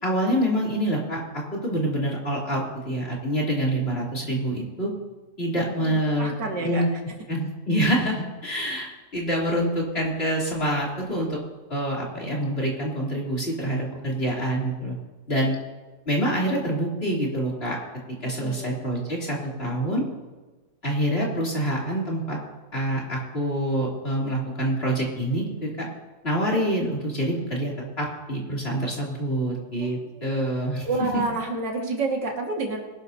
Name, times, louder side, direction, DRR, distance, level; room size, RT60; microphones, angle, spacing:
voice 1, 0.0-4.9 5.4-6.3 6.6-6.9 7.3-8.9 9.1-11.4 11.7-15.0 15.3-15.6 16.1-17.8 18.2-20.0 20.8-22.4 22.7-25.9 26.2-31.2, right 1 dB, 35° left, -4 dB, 3.4 m, -26 dB
voice 2, 5.6-6.9 18.2-18.7 29.8-30.4 30.8-32.8, right 3 dB, 85° right, 0 dB, 2.7 m, -30 dB
22.0 x 12.5 x 2.8 m, 1.3 s
omnidirectional pair, 1.8 m